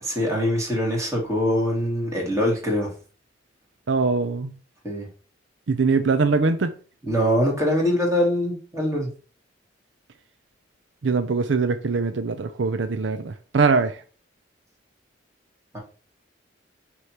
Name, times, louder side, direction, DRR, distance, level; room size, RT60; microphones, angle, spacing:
voice 1, 0.0-2.9 4.8-5.1 7.1-9.1 15.7-15.8, equal, 15° right, 2.5 m, -23 dB
voice 2, 3.9-4.5 5.7-6.7 11.0-14.0, right 4 dB, 70° right, 0.5 m, -22 dB
6.3 x 3.1 x 5.8 m
head